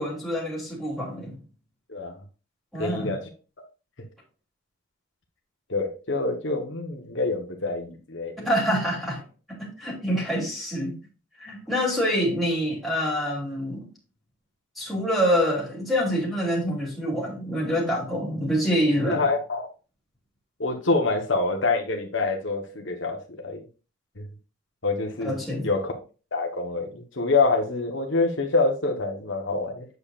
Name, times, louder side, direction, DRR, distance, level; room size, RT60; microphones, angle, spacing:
voice 1, 0.0-1.4 2.7-3.1 8.4-9.2 9.5-11.0 11.4-13.9 14.8-19.2 25.2-25.7, equal, ahead, -6 dB, 3.0 m, -26 dB
voice 2, 2.8-3.2 5.7-8.5 19.1-19.7 20.6-23.6 24.2-24.3 24.8-25.4 25.6-25.9 26.3-29.9, left 3 dB, 65° left, 2 dB, 1.2 m, -26 dB
8.1 x 6.8 x 2.5 m, 0.34 s
head